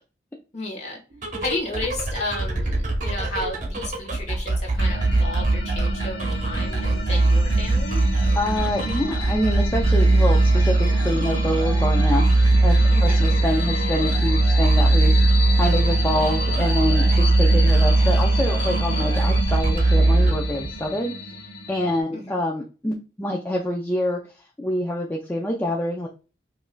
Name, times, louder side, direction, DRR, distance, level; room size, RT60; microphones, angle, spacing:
voice 1, 0.5-1.0 1.4-8.0 12.9-13.2 22.1-22.3, left 2 dB, 40° left, 0 dB, 1.2 m, -32 dB
sound 1, 1.1-20.9, right 2 dB, 45° right, 0.9 m, -20 dB
sound 2, 4.8-22.0, left 1 dB, 70° left, 0.8 m, -31 dB
voice 2, 8.3-12.2 12.6-21.1 21.7-24.2 24.6-26.1, left 1 dB, 10° left, -1 dB, 0.4 m, -26 dB
5.0 x 2.5 x 2.2 m, 0.33 s
head